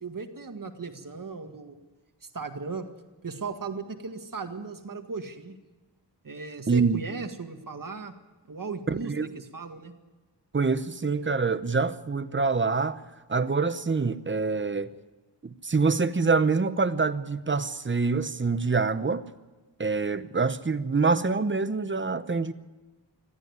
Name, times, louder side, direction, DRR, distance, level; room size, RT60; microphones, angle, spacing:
voice 1, 0.0-1.8 2.2-2.9 3.2-5.6 6.2-8.1 8.5-9.9, right 4 dB, 50° right, 1.9 m, -37 dB
voice 2, 6.7-7.0 8.9-9.3 10.5-13.0 13.3-14.9 15.4-19.2 19.8-22.5, right 4 dB, 25° right, 0.9 m, -25 dB
20.5 x 14.0 x 9.6 m
wide cardioid pair, 95°, 43 cm